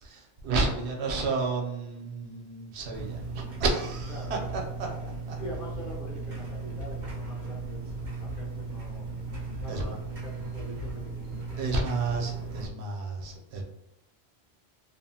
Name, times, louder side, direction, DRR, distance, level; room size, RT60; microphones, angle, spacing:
voice 1, 0.0-4.6 9.7-9.9 11.6-13.6, right 3 dB, 80° right, 0 dB, 0.9 m, -31 dB
sound 1, 2.9-12.7, right 3 dB, 55° right, 0.6 m, -36 dB
voice 2, 4.1-7.8 8.2-9.1 9.6-11.6, equal, 55° left, -4 dB, 1.0 m, -44 dB
2.8 x 2.0 x 2.7 m, 0.86 s
omnidirectional pair, 1.1 m